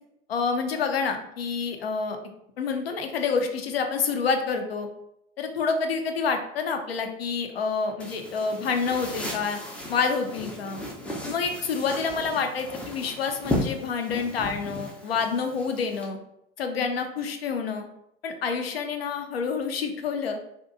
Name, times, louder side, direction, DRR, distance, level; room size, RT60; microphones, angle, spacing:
voice 1, 0.3-2.2 2.6-4.9 5.4-9.6 9.9-10.8 11.2-16.2 16.6-17.9 18.2-20.4, left 5 dB, 80° left, 5 dB, 0.4 m, -28 dB
sound 1, 8.0-16.1, left 1 dB, 5° left, 0.3 m, -35 dB
2.6 x 2.1 x 2.4 m, 0.79 s
figure-of-eight pair, 80°, 30 cm